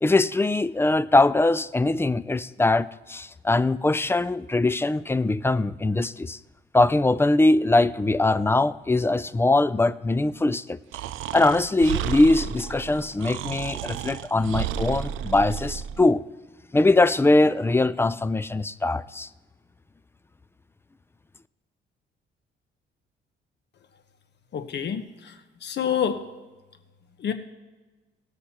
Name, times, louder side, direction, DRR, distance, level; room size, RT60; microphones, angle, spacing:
voice 1, 0.0-6.4 6.7-10.8 11.3-16.2 16.7-19.3, left 2 dB, 10° left, 16 dB, 0.4 m, -22 dB
Breathing, 10.9-16.0, right 10 dB, 90° right, 0.5 m, -32 dB
voice 2, 24.5-26.2 27.2-27.3, left 8 dB, 60° left, 8 dB, 1.1 m, -28 dB
18.0 x 6.5 x 4.3 m, 1.2 s
cardioid pair, 90°, 20 cm